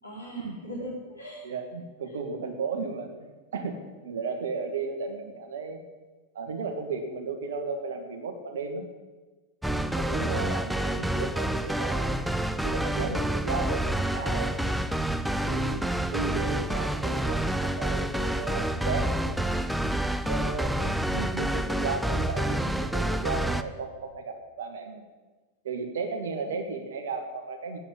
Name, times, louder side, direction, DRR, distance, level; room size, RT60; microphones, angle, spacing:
voice 1, 0.0-1.4 26.4-26.8, equal, 85° left, -5 dB, 4.7 m, -41 dB
voice 2, 1.4-3.8 4.0-5.8 6.3-8.9 9.6-12.2 12.6-14.6 15.4-19.6 20.3-25.0 25.6-27.8, right 4 dB, 60° right, 5 dB, 1.8 m, -34 dB
sound 1, 9.6-23.6, right 1 dB, ahead, 0.5 m, -28 dB
8.9 x 8.6 x 8.8 m, 1.3 s
figure-of-eight pair, 90°, 0 cm